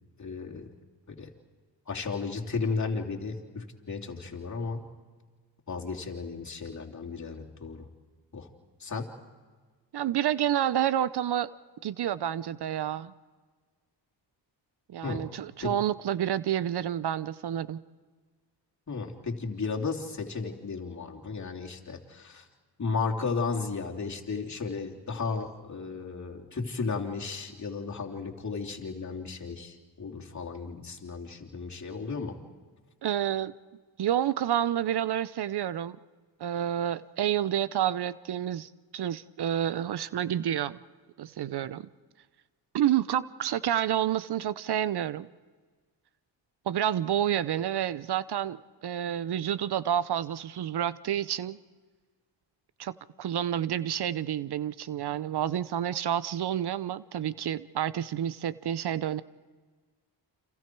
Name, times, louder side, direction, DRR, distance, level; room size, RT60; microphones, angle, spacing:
voice 1, 0.2-0.7 1.1-1.3 1.9-4.9 5.7-7.9 8.3-8.5 8.8-9.1 15.0-15.3 15.6-15.7 18.9-22.4 22.8-32.4, left 4 dB, 40° left, 0 dB, 3.1 m, -34 dB
voice 2, 9.9-11.5 11.8-13.1 14.9-17.8 33.0-33.5 34.0-36.0 36.4-40.8 41.2-41.9 42.7-45.3 46.7-51.6 52.8-59.2, right 10 dB, 60° right, 16 dB, 0.7 m, -29 dB
29.5 x 27.0 x 4.6 m, 1.5 s
cardioid pair, 75°, 45 cm